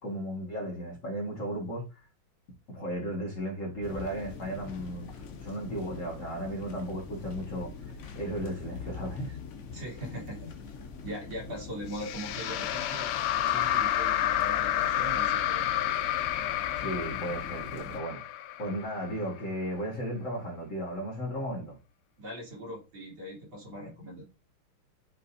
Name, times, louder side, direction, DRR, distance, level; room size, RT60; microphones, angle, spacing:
voice 1, 0.0-1.9 2.7-7.7 8.2-9.4 16.7-18.2 18.6-21.8, equal, 35° left, 2.1 m, -35 dB
sound 1, 3.8-18.0, left 5 dB, 60° left, 0.7 m, -44 dB
voice 2, 9.7-10.8 11.0-13.1 13.5-15.6 22.2-24.2, right 1 dB, 65° right, 4.1 m, -41 dB
sound 2, 11.9-19.2, left 12 dB, 85° left, 1.5 m, -30 dB
9.9 x 5.1 x 2.7 m
omnidirectional pair, 2.3 m